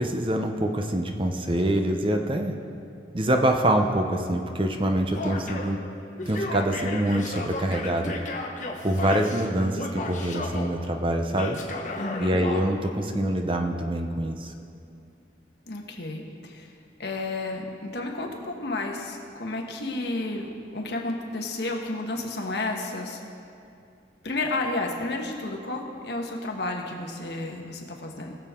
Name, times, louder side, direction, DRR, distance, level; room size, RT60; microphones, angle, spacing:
voice 1, 0.0-2.5 3.1-5.8 6.3-8.1 8.8-11.6 12.2-14.5, right 1 dB, 30° right, 4 dB, 0.7 m, -25 dB
Male speech man speaking / Yell, 5.1-5.8 6.2-9.5 9.7-10.7 11.3-12.7, left 2 dB, 45° left, 1.2 m, -33 dB
voice 2, 12.0-12.4 15.7-16.7 17.0-23.2 24.2-28.4, left 2 dB, 70° left, 1 dB, 1.4 m, -31 dB
21.0 x 7.3 x 3.7 m, 2.6 s
head